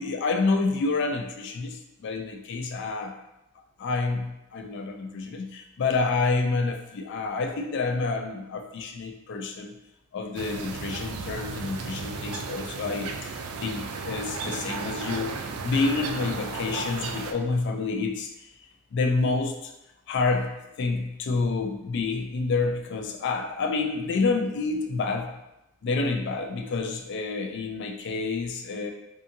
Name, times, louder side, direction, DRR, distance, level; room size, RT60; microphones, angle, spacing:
voice 1, 0.0-3.1 3.8-9.8 10.1-15.4 15.6-18.5 18.9-19.7 20.1-25.3 25.8-28.9, left 3 dB, 55° left, 5 dB, 0.3 m, -28 dB
sound 1, 10.3-17.3, right 4 dB, 85° right, 0.3 m, -34 dB
2.6 x 2.6 x 2.6 m, 0.90 s
head